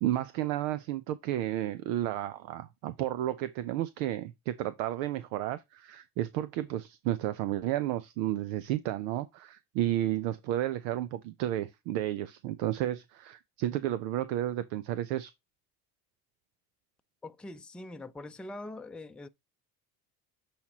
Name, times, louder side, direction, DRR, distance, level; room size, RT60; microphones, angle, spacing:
voice 1, 0.0-15.3, right 13 dB, 80° right, 0.7 m, -32 dB
voice 2, 17.2-19.3, left 2 dB, ahead, 0.5 m, -43 dB
8.5 x 4.3 x 2.9 m
hypercardioid pair, 65°, 47 cm